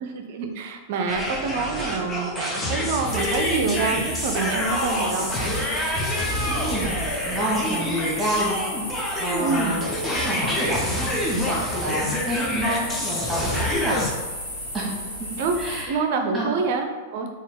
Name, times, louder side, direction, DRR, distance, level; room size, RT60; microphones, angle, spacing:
voice 1, 0.0-5.6 9.4-9.8 15.4-15.6 15.9-17.3, right 4 dB, 50° right, 5 dB, 0.4 m, -27 dB
sound 1, 1.1-14.1, left 1 dB, 15° left, 0.7 m, -27 dB
sound 2, 3.0-15.8, equal, 80° left, 1.3 m, -34 dB
voice 2, 6.5-8.6 9.2-11.2 11.4-14.0 14.7-14.9 15.6-16.0 16.3-16.5, right 1 dB, 10° right, -5 dB, 1.5 m, -28 dB
4.0 x 2.4 x 3.8 m, 1.4 s
figure-of-eight pair, 95°, 0 cm